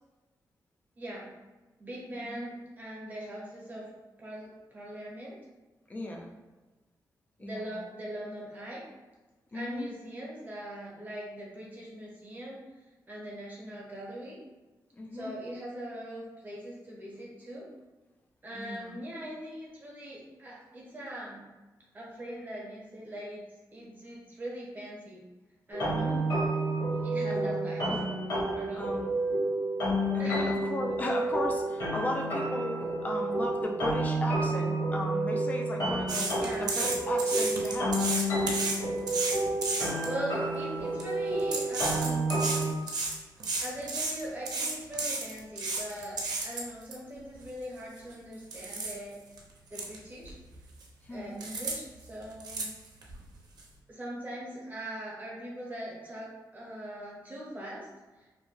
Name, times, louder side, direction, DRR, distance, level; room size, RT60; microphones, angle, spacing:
voice 1, 1.0-1.3 1.8-3.9 4.2-5.4 7.4-8.9 9.5-12.6 13.1-14.4 15.1-17.7 18.4-21.4 21.9-23.4 23.7-25.3 25.7-26.2 27.0-27.9 28.6-28.9 30.2-30.6 36.4-36.7 39.8-42.4 43.6-49.2 49.7-50.4 51.1-52.7 53.9-57.9 58.2-58.3, right 1 dB, 25° right, -4 dB, 0.8 m, -41 dB
voice 2, 5.9-6.3 7.4-7.8 9.5-9.9 14.9-15.3 18.5-18.9 25.9-26.2 27.3-28.0 28.7-29.1 29.8-36.3 36.6-38.2 51.0-51.4, left 1 dB, 20° left, 1 dB, 0.3 m, -36 dB
sound 1, 25.7-42.7, right 1 dB, 45° left, 0.9 m, -30 dB
sound 2, 36.1-40.1 40.8-41.0 41.4-46.9 47.4-47.5 48.0-48.1 48.5-48.9 49.4-49.5 49.7-50.0 50.2-50.8 51.4-51.7 52.0-53.2 53.6-53.7, right 3 dB, 70° right, 0.5 m, -32 dB
2.6 x 2.1 x 3.0 m, 1.2 s
wide cardioid pair, 160°, 7 cm